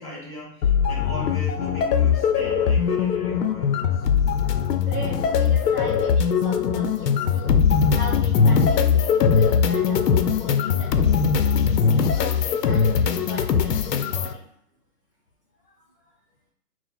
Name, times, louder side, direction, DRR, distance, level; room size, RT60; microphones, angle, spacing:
voice 1, 0.0-4.1, left 1 dB, 5° left, -5 dB, 1.3 m, -39 dB
sound 1, 0.6-14.3, left 6 dB, 85° left, 0.6 m, -21 dB
voice 2, 4.4-7.6 7.9-11.3 11.7-14.5, left 2 dB, 35° left, -5 dB, 0.6 m, -38 dB
4.0 x 2.1 x 4.2 m, 0.68 s
hypercardioid pair, 160°, 47 cm